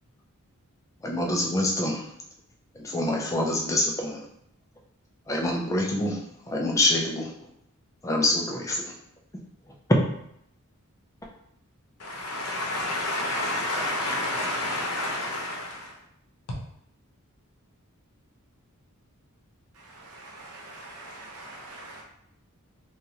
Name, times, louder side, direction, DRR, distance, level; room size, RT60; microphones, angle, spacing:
voice 1, 1.0-2.1 2.8-4.2 5.3-6.2 6.5-7.3 8.0-9.0 9.9-10.0, left 1 dB, 15° left, 0 dB, 0.3 m, -25 dB
voice 2, 12.0-15.9, left 1 dB, 85° left, 0 dB, 0.7 m, -29 dB
voice 3, 20.1-22.0, right 2 dB, 85° right, -2 dB, 0.8 m, -44 dB
3.0 x 2.3 x 2.7 m, 0.74 s
head